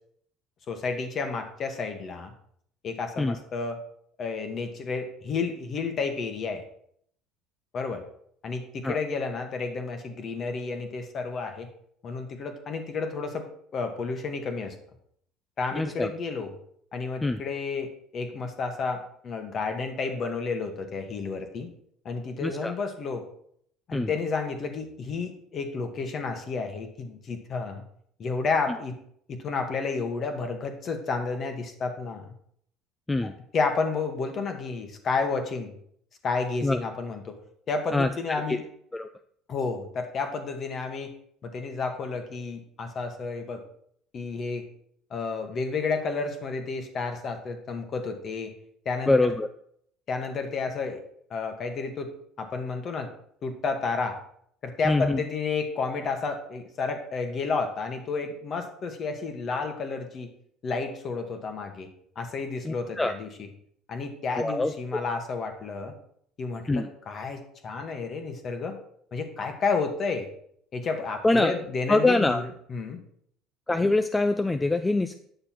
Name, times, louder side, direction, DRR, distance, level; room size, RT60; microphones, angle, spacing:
voice 1, 0.7-2.3 2.8-3.8 4.2-6.6 7.7-8.0 8.4-11.7 12.0-13.5 13.7-14.7 15.6-16.5 16.9-21.7 22.0-23.3 23.9-27.8 28.2-29.0 29.3-32.2 33.2-35.7 36.2-37.4 37.7-38.6 39.5-41.1 41.4-43.6 44.1-44.7 45.1-48.5 48.8-49.3 50.1-51.0 51.3-52.1 52.4-53.1 53.4-54.2 54.6-60.3 60.6-61.9 62.1-63.3 63.9-65.9 66.4-68.8 69.1-70.3 70.7-72.4 72.7-73.0, left 4 dB, 40° left, 6 dB, 1.6 m, -31 dB
voice 2, 15.7-16.1 17.2-17.4 22.4-22.7 23.9-24.1 33.1-33.3 36.6-36.8 37.9-38.1 38.5-38.6 38.9-39.1 49.1-49.5 54.8-55.2 62.6-63.1 64.4-64.7 66.7-66.9 71.2-71.5 71.9-72.4 73.7-75.1, left 2 dB, 10° left, 8 dB, 0.4 m, -24 dB
9.3 x 6.7 x 4.5 m, 0.67 s
cardioid pair, 120°, 0 cm